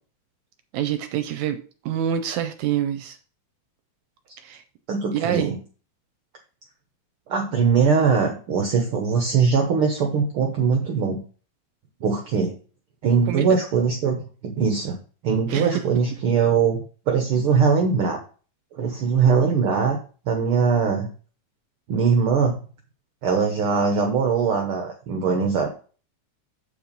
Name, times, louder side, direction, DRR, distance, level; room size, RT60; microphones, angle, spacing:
voice 1, 0.7-1.6 1.9-3.2 4.4-4.6 5.1-5.5 13.3-13.6 15.5-15.8, right 10 dB, 75° right, 9 dB, 2.0 m, -26 dB
voice 2, 4.9-5.6 7.3-11.2 12.0-12.5 13.0-15.0 15.2-16.8 17.1-18.2 18.8-20.0 20.3-21.1 21.9-22.6 23.2-25.7, right 5 dB, 60° right, 2 dB, 1.6 m, -21 dB
8.1 x 4.6 x 5.2 m, 0.37 s
omnidirectional pair, 3.4 m